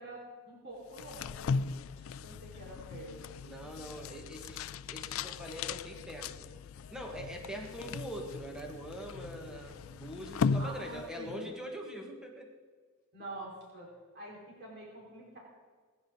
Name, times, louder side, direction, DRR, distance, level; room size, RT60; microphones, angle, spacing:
voice 1, 0.0-3.4 10.6-11.5 13.1-13.9 14.1-15.4, right 1 dB, 50° right, -5 dB, 4.5 m, -47 dB
sound 1, 0.9-11.4, left 5 dB, 70° left, 0.3 m, -38 dB
sound 2, 1.2-1.5 1.9-2.2 2.5-2.8 3.7-4.1 5.0-5.7 6.8-7.4 7.9-8.7 9.0-9.3 9.7-10.5 11.7-11.9, left 1 dB, 35° left, 3.4 m, -63 dB
voice 2, 3.4-6.5 6.9-12.5, equal, 5° right, 1 dB, 1.6 m, -43 dB
22.0 x 10.5 x 4.0 m, 1.5 s
head